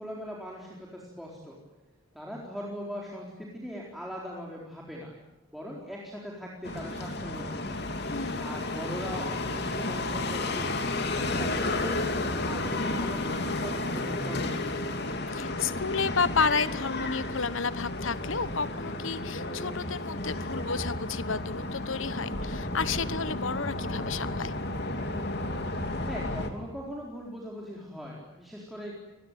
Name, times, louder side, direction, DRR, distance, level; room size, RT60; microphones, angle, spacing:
voice 1, 0.0-1.6 2.1-5.1 5.5-7.9 8.4-10.7 11.1-14.8 26.1-29.0, equal, ahead, -3 dB, 4.2 m, -40 dB
sound 1, 6.6-26.5, left 2 dB, 50° left, 2.9 m, -32 dB
voice 2, 8.1-8.5 15.3-24.5, left 5 dB, 70° left, 16 dB, 1.1 m, -31 dB
28.0 x 21.0 x 9.3 m, 0.97 s
head